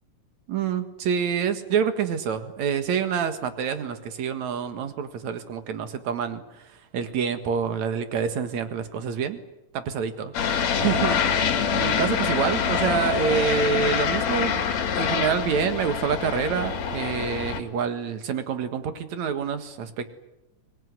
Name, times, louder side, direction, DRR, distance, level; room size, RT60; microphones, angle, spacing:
voice 1, 0.5-6.4 6.9-9.4 9.7-10.3 10.8-14.5 15.0-20.1, right 7 dB, 65° right, 9 dB, 3.0 m, -27 dB
sound 1, 10.3-17.6, left 7 dB, 60° left, 3.0 m, -25 dB
25.0 x 20.0 x 9.7 m, 0.94 s
omnidirectional pair, 3.6 m